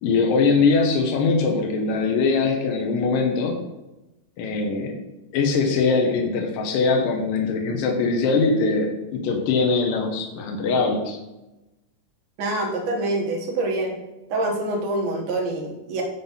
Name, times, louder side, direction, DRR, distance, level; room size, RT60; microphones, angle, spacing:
voice 1, 0.0-3.6 4.4-5.0 5.3-11.2, left 4 dB, 85° left, 2 dB, 2.6 m, -22 dB
voice 2, 12.4-14.0 14.3-16.0, right 2 dB, 75° right, -1 dB, 2.9 m, -25 dB
9.5 x 4.0 x 5.5 m, 1.0 s
omnidirectional pair, 3.8 m